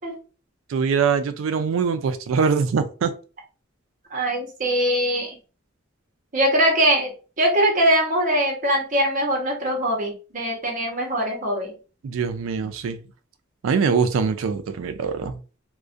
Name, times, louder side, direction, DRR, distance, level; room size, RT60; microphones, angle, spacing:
voice 1, 0.7-3.1 12.0-13.0 13.6-15.4, right 5 dB, 80° right, 0.3 m, -23 dB
voice 2, 4.1-5.4 6.3-11.7, right 1 dB, 45° right, 0.8 m, -22 dB
2.4 x 2.1 x 2.5 m
head